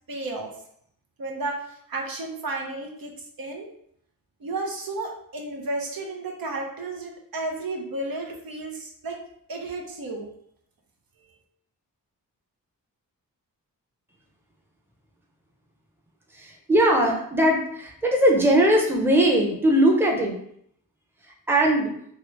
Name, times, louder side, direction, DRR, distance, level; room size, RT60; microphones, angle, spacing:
voice 1, 0.1-0.5 1.2-3.1 3.4-3.7 4.4-9.2 9.5-10.3 11.2-11.3, right 2 dB, 75° right, 1 dB, 0.7 m, -32 dB
voice 2, 16.3-20.4 21.5-21.9, right 1 dB, 5° right, 0 dB, 0.6 m, -20 dB
3.0 x 2.4 x 3.0 m, 0.69 s
wide cardioid pair, 80°, 35 cm